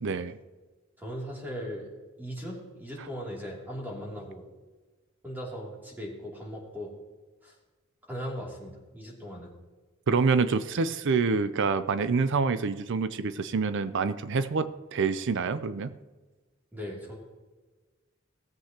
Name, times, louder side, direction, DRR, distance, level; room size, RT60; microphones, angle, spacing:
voice 1, 0.0-0.4 10.1-15.9, right 4 dB, 60° right, 12 dB, 0.5 m, -27 dB
voice 2, 1.0-1.9 2.2-4.4 5.2-6.9 7.4-7.5 8.1-9.5 16.7-17.1, equal, 10° right, -3 dB, 2.8 m, -38 dB
17.5 x 7.8 x 2.9 m, 1.3 s
head